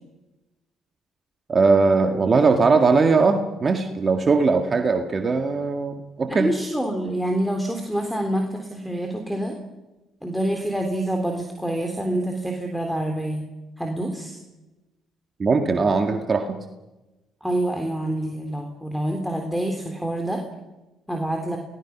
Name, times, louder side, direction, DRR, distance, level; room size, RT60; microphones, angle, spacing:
voice 1, 1.5-6.5 15.4-16.6, right 4 dB, 40° right, 5 dB, 2.0 m, -20 dB
voice 2, 6.3-9.6 10.2-13.4 13.8-14.4 17.4-20.4 21.1-21.6, right 1 dB, ahead, 4 dB, 3.6 m, -26 dB
29.0 x 19.0 x 6.2 m, 1.1 s
hypercardioid pair, 55°, 0 cm